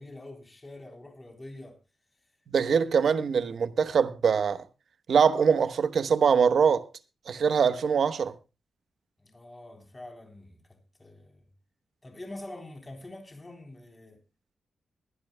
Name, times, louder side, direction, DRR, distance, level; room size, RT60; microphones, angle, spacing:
voice 1, 0.0-1.8 2.6-2.7 3.0-3.1 9.2-11.4 12.0-14.2, left 2 dB, 20° left, 3.6 m, -45 dB
voice 2, 2.5-4.6 5.1-6.9 7.3-8.3, right 6 dB, 65° right, 1.1 m, -23 dB
23.5 x 10.5 x 2.3 m
cardioid pair, 90°, 0 cm